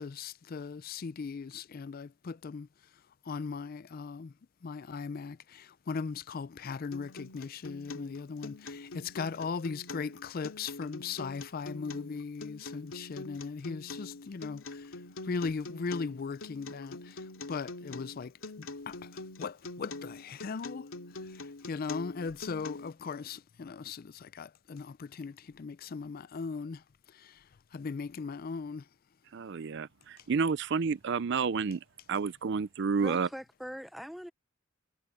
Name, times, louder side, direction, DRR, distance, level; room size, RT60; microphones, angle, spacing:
voice 1, 0.0-2.7 3.2-4.3 4.6-15.0 15.2-20.9 21.2-28.9, left 5 dB, 45° left, 0.4 m, -38 dB
Acoustic guitar, 6.9-22.9, left 2 dB, 85° left, 2.7 m, -44 dB
voice 2, 29.3-31.8 32.1-33.3, right 5 dB, 60° right, 0.5 m, -30 dB
voice 3, 33.0-34.3, equal, ahead, 0.7 m, -42 dB
head